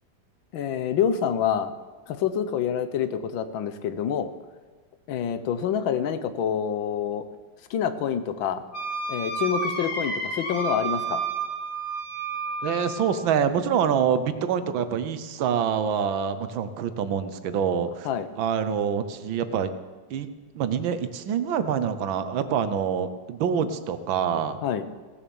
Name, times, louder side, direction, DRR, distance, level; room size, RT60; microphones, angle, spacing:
voice 1, 0.5-1.7 2.1-4.3 5.1-7.2 7.7-8.6 9.1-11.2 18.0-18.3 24.6-24.9, left 8 dB, 80° left, 11 dB, 1.6 m, -27 dB
Wind instrument woodwind instrument, 8.7-13.1, right 3 dB, 55° left, 3.0 m, -30 dB
voice 2, 12.6-18.1 18.4-19.7 20.1-20.3 20.5-24.6, right 7 dB, 80° right, 11 dB, 1.6 m, -26 dB
17.5 x 7.2 x 7.0 m, 1.4 s
omnidirectional pair, 2.1 m